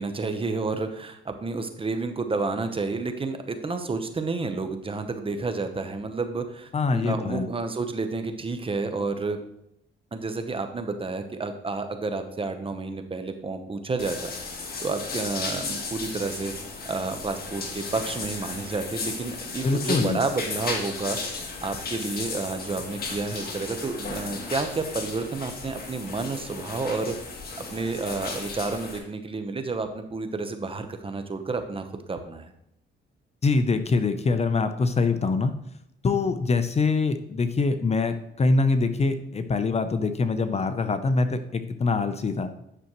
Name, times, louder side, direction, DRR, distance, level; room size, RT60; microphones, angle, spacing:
voice 1, 0.0-9.4 10.1-14.3 14.8-16.5 16.9-21.2 21.6-27.2 27.6-32.5, right 3 dB, 25° right, 7 dB, 0.9 m, -30 dB
voice 2, 6.7-7.5 19.6-20.2 33.4-35.5 36.0-42.5, left 3 dB, 30° left, 10 dB, 0.7 m, -24 dB
sound 1, 14.0-29.0, left 4 dB, 50° left, 1.7 m, -35 dB
9.9 x 6.3 x 3.1 m, 0.78 s
cardioid pair, 90°, 20 cm